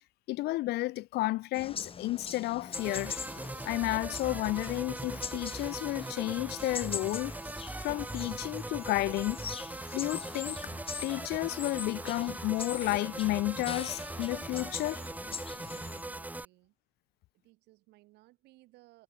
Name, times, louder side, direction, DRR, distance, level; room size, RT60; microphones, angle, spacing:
voice 1, 0.3-3.2 3.7-7.3 7.8-9.4 9.9-10.7 11.0-15.0, left 18 dB, 75° left, 0.5 m, -32 dB
sound 1, 1.5-16.0, left 6 dB, 35° left, 2.3 m, -43 dB
sound 2, 2.7-16.4, right 2 dB, 10° right, 1.1 m, -40 dB
sound 3, 10.5-16.2, right 8 dB, 45° right, 3.9 m, -64 dB
voice 2, 15.6-16.8 17.3-19.0, right 19 dB, 85° right, 3.7 m, -61 dB
cardioid pair, 110°, 17 cm